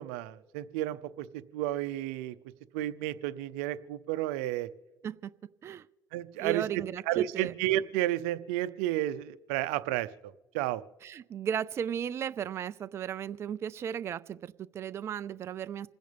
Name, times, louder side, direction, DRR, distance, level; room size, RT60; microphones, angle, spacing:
voice 1, 0.0-2.4 2.7-4.7 6.1-10.1 10.5-10.8, right 14 dB, 85° right, 14 dB, 0.6 m, -32 dB
voice 2, 6.4-7.5 11.0-15.9, right 9 dB, 40° right, 14 dB, 0.4 m, -35 dB
27.5 x 10.5 x 3.5 m, 1.3 s
supercardioid pair, 95°, 7 cm